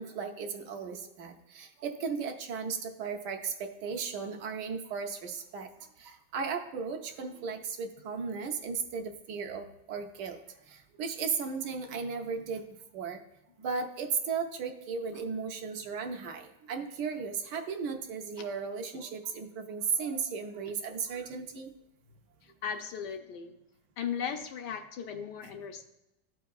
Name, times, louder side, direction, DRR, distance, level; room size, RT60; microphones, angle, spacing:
voice 1, 0.0-5.7 6.0-10.4 10.7-12.6 12.9-13.2 13.6-21.7, right 5 dB, 70° right, 4 dB, 1.2 m, -35 dB
voice 2, 22.4-23.6 24.0-25.8, left 7 dB, 75° left, 5 dB, 1.2 m, -37 dB
12.5 x 4.6 x 2.3 m, 0.90 s
omnidirectional pair, 2.0 m